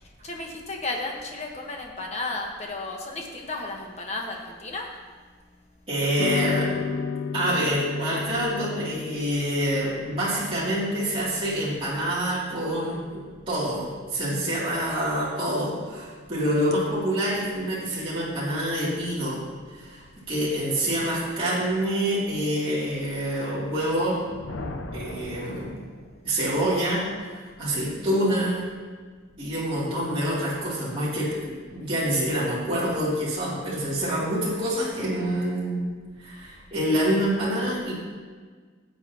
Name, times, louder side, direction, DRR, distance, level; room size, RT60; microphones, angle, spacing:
voice 1, 0.2-4.9, left 2 dB, 35° left, 1 dB, 1.3 m, -33 dB
voice 2, 5.9-7.0 7.3-13.2 13.5-24.2 24.9-25.8 26.3-27.0 27.6-28.6 29.4-35.9 36.2-37.9, equal, 25° right, -9 dB, 2.8 m, -26 dB
sound 1, 6.2-14.7, left 5 dB, 60° left, 0.4 m, -34 dB
Thunder, 24.0-26.5, left 2 dB, 75° left, 0.7 m, -39 dB
16.5 x 7.6 x 2.9 m, 1.5 s
head